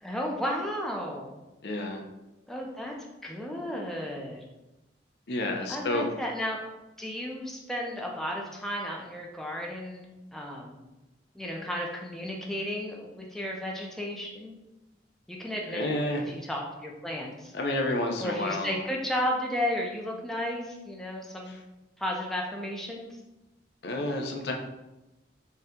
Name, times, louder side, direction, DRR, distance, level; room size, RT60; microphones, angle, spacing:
voice 1, 0.0-1.3 2.5-2.9 3.2-4.5 5.7-6.6 7.0-10.8 11.3-14.6 15.3-16.0 16.3-17.5 18.2-21.5 22.0-23.2, equal, ahead, -1 dB, 0.5 m, -33 dB
voice 2, 1.6-2.0 5.3-6.1 15.7-16.2 17.5-18.7 23.8-24.5, left 1 dB, 65° left, 2 dB, 0.6 m, -30 dB
4.1 x 2.2 x 3.6 m, 0.99 s
head